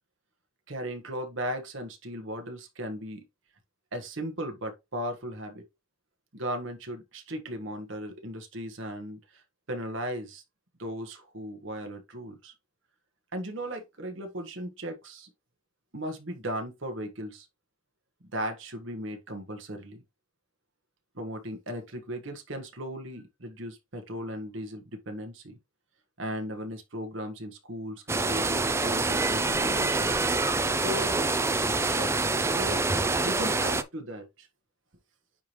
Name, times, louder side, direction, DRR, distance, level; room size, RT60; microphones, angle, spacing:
voice 1, 0.7-3.2 3.9-5.6 6.3-9.4 9.7-10.4 10.8-12.5 13.3-15.3 15.9-17.5 18.3-20.0 21.1-25.6 26.2-30.1 30.8-31.4 31.9-32.8 33.2-34.5, equal, 60° right, 1.5 m, -37 dB
sound 1, 28.1-33.8, right 3 dB, 10° right, 0.3 m, -26 dB
9.6 x 3.3 x 3.0 m
head